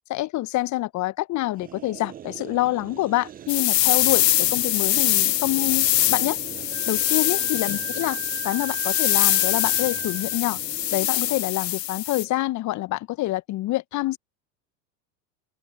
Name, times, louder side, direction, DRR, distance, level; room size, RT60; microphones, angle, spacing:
voice 1, 0.1-6.4 6.9-8.2 8.4-10.6 10.9-14.2, left 17 dB, 35° left, 1.2 m, -26 dB
sound 1, 1.6-12.0, right 10 dB, 20° right, 0.6 m, -42 dB
sound 2, 3.5-12.3, left 14 dB, 80° left, 0.7 m, -23 dB
Wind instrument woodwind instrument, 6.7-10.4, right 40 dB or more, 50° right, 3.1 m, -38 dB
open air
figure-of-eight pair, 85°, 49 cm